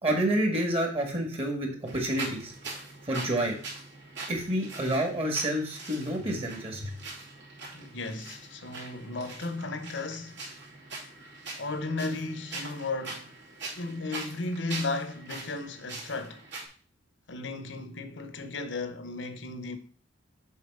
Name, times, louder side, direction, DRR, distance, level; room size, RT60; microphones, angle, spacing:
voice 1, 0.0-2.5 3.1-3.6 4.3-6.9, right 1 dB, 35° right, 1.6 m, -28 dB
sound 1, 1.9-16.7, right 3 dB, 70° right, 2.8 m, -43 dB
voice 2, 7.7-10.4 11.6-13.3 13.8-16.4 17.3-19.8, left 3 dB, 70° left, 0.9 m, -35 dB
7.3 x 4.2 x 5.4 m
head